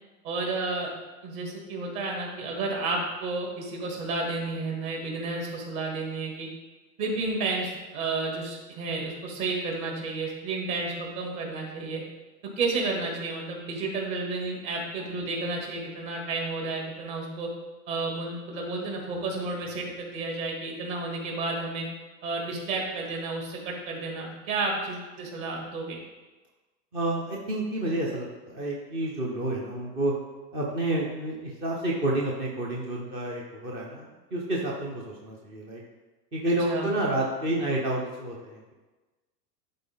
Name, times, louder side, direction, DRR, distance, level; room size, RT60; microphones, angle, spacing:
voice 1, 0.2-0.9 1.2-6.5 7.0-12.0 12.6-17.5 17.9-21.9 22.2-26.0 36.7-36.9, right 3 dB, 45° right, -1 dB, 2.4 m, -31 dB
voice 2, 26.9-30.1 30.5-35.8 36.3-38.7, right 1 dB, 15° right, -2 dB, 0.3 m, -29 dB
11.0 x 4.2 x 3.7 m, 1.2 s
hypercardioid pair, 130°, 50 cm